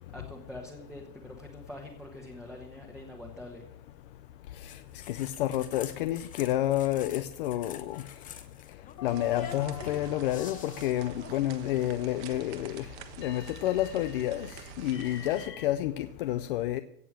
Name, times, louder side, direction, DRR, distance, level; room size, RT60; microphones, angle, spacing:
voice 1, 0.1-3.7, left 1 dB, ahead, 1.2 m, -45 dB
sound 1, 4.7-11.9, left 9 dB, 15° left, 0.8 m, -48 dB
voice 2, 5.1-8.0 9.0-12.9 13.2-16.8, left 13 dB, 40° left, 0.4 m, -30 dB
sound 2, 7.9-8.5 9.0-12.1 13.2-15.7, left 8 dB, 90° left, 2.9 m, -48 dB
sound 3, 9.0-15.5, right 7 dB, 45° right, 1.4 m, -47 dB
16.5 x 6.7 x 7.4 m
supercardioid pair, 145°, 49 cm